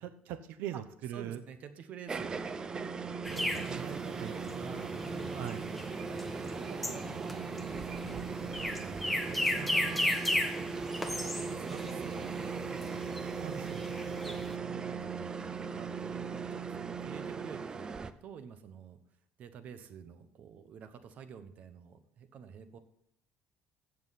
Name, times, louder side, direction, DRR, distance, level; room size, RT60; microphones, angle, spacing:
voice 1, 0.0-1.4 4.2-4.4 5.4-5.6 13.4-13.8, right 11 dB, 80° right, 11 dB, 0.8 m, -40 dB
voice 2, 1.1-2.4 3.3-8.3 8.6-10.1 11.3-12.3 13.6-13.8 14.2-17.9 18.2-19.0 19.4-22.8, right 7 dB, 50° right, 11 dB, 1.0 m, -49 dB
sound 1, 2.1-18.1, right 5 dB, 25° right, 0.5 m, -38 dB
sound 2, 3.2-14.6, left 1 dB, ahead, 1.0 m, -36 dB
15.0 x 7.4 x 4.2 m, 0.72 s
cardioid pair, 150°, 3 cm